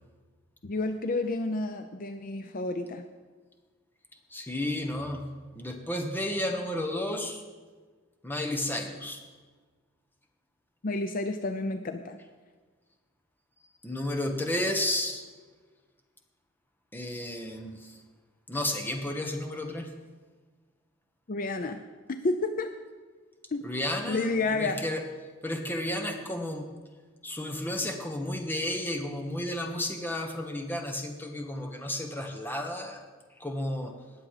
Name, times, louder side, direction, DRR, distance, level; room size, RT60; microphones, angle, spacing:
voice 1, 0.6-3.1 10.8-12.2 21.3-21.8 22.2-22.7 23.5-23.6 24.1-24.9, left 2 dB, 45° left, 8 dB, 0.6 m, -30 dB
voice 2, 4.3-7.4 8.2-9.2 13.8-15.3 16.9-18.0 18.5-19.9 23.6-25.0 25.4-26.7 27.2-33.0 33.4-33.9, left 1 dB, 10° left, 4 dB, 1.2 m, -32 dB
19.0 x 7.5 x 4.9 m, 1.4 s
head